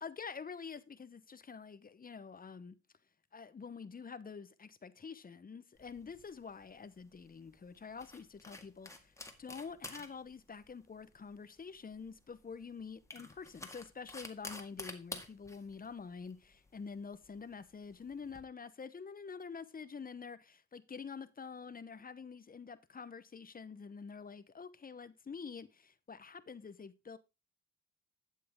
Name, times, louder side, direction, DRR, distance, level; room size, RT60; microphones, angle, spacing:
voice 1, 0.0-2.8 3.3-9.1 9.4-27.2, left 5 dB, 30° left, 0.9 m, -47 dB
sound 1, 5.8-18.4, left 2 dB, 10° left, 1.9 m, -51 dB
11.5 x 7.6 x 3.6 m
cardioid pair, 90°, 30 cm